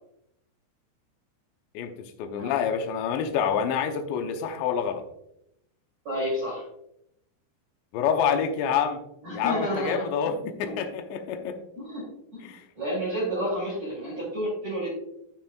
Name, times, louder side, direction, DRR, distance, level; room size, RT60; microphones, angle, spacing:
voice 1, 1.7-5.0 7.9-9.0 9.3-11.6 12.4-12.6, left 7 dB, 75° left, 5 dB, 2.8 m, -27 dB
voice 2, 6.0-6.6 9.2-10.0 10.4-10.8 11.8-14.9, equal, 40° right, -7 dB, 3.3 m, -31 dB
13.5 x 6.0 x 2.3 m, 0.79 s
omnidirectional pair, 5.7 m